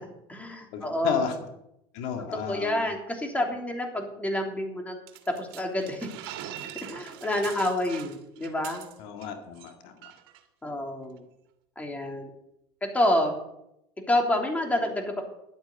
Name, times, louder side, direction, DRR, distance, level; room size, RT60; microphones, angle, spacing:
voice 1, 0.0-1.3 2.5-5.0 5.3-6.1 6.8-8.8 10.6-11.2 11.8-12.3 12.9-13.4 14.1-15.2, left 1 dB, 10° left, 2 dB, 3.1 m, -28 dB
voice 2, 0.7-1.4 1.9-2.8 9.0-10.1, left 7 dB, 75° left, 5 dB, 2.1 m, -32 dB
sound 1, 5.1-9.3 9.6-9.7 10.0-10.4, right 12 dB, 80° right, 1.9 m, -42 dB
11.5 x 9.0 x 8.0 m, 0.82 s
supercardioid pair, 105°, 12 cm